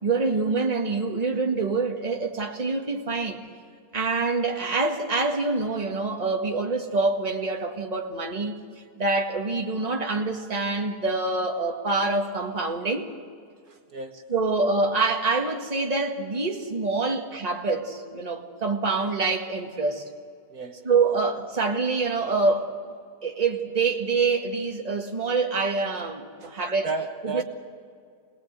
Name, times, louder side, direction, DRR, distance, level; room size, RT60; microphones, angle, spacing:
voice 1, 0.0-3.4 3.9-8.6 9.0-13.1 14.3-20.1 20.8-22.7 23.2-26.9 27.2-27.4, right 3 dB, 25° right, 1.8 m, -26 dB
voice 2, 13.7-14.2 20.5-20.9 26.4-26.5 26.8-27.4, right 4 dB, 60° right, 1.7 m, -33 dB
26.0 x 19.5 x 8.2 m
omnidirectional pair, 1.8 m